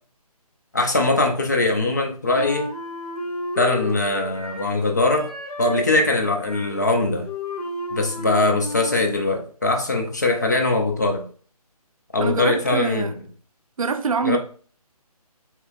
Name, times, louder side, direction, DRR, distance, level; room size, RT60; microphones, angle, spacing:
voice 1, 0.7-2.7 3.6-5.3 5.6-7.3 7.9-11.3 12.1-13.1 14.2-14.4, left 2 dB, 30° left, 0.4 m, -21 dB
Wind instrument woodwind instrument, 2.3-4.8 5.1-9.2, left 2 dB, 65° left, 1.1 m, -33 dB
voice 2, 12.2-13.2 13.8-14.4, right 5 dB, 60° right, 0.4 m, -24 dB
2.9 x 2.2 x 3.3 m
figure-of-eight pair, 165°, 20 cm